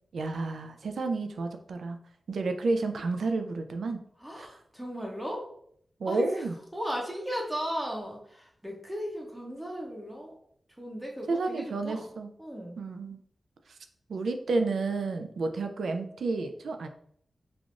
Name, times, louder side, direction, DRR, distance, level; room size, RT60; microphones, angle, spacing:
voice 1, 0.1-2.0 2.3-4.0 4.4-4.5 6.0-6.5 11.3-12.3 12.8-13.2 14.1-16.9, right 3 dB, 90° right, 6 dB, 0.3 m, -30 dB
voice 2, 4.2-5.5 6.1-6.5 6.7-10.3 10.8-12.1 12.4-12.8, equal, 10° right, -1 dB, 0.6 m, -36 dB
3.4 x 2.3 x 2.5 m, 0.66 s
wide cardioid pair, 95°, 0 cm